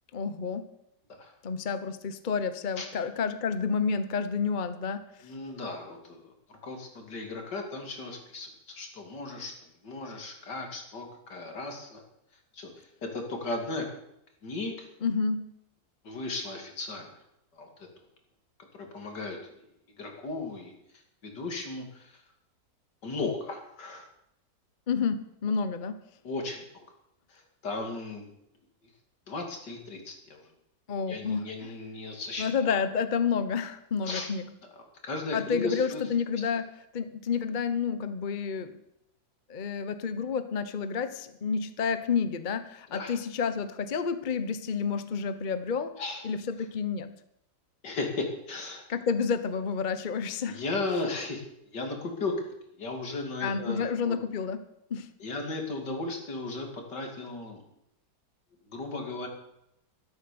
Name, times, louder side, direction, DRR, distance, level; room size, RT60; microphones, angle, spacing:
voice 1, 0.1-0.7 1.4-5.0 15.0-15.5 24.9-26.0 30.9-31.7 32.4-34.5 35.3-38.7 39.5-45.9 46.2-47.1 48.9-50.6 53.4-54.6 54.9-55.1, left 6 dB, 35° left, 11 dB, 0.8 m, -30 dB
voice 2, 5.2-9.5 9.8-12.0 12.5-13.9 14.4-14.9 16.0-17.1 17.5-17.9 18.7-19.4 20.0-20.7 21.2-22.1 23.0-24.1 26.2-26.6 27.3-28.3 29.3-30.5 30.9-32.7 34.0-34.3 35.0-36.0 42.9-43.1 46.0-46.2 47.8-48.8 50.5-52.5 52.8-54.2 55.2-57.6 58.7-59.3, left 3 dB, 75° left, 3 dB, 3.2 m, -36 dB
13.0 x 12.5 x 6.9 m, 0.80 s
omnidirectional pair, 1.9 m